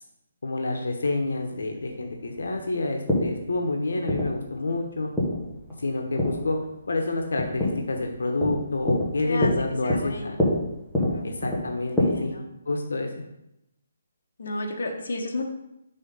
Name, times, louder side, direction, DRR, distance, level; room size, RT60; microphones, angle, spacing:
voice 1, 0.4-5.1 5.8-6.6 6.9-10.5 11.2-12.3 12.7-13.1, left 2 dB, 85° left, 3 dB, 0.9 m, -28 dB
sound 1, 1.0-12.0, left 1 dB, ahead, 1.0 m, -29 dB
voice 2, 9.8-10.5 11.0-11.3 11.9-12.4 14.4-15.4, left 2 dB, 60° left, 1 dB, 1.1 m, -33 dB
5.6 x 3.8 x 5.4 m, 0.85 s
hypercardioid pair, 175°, 0 cm